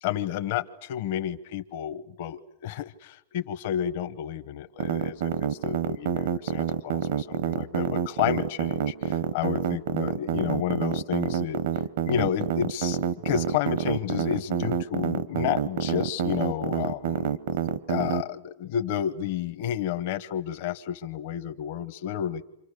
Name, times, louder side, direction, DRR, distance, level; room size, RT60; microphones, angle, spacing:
voice 1, 0.0-11.6 12.0-13.0 13.2-17.4 17.9-22.4, left 10 dB, 50° left, 9 dB, 0.9 m, -31 dB
sound 1, 4.8-18.2, right 9 dB, 65° right, 0.9 m, -27 dB
29.5 x 26.5 x 6.6 m, 0.81 s
supercardioid pair, 165°, 0 cm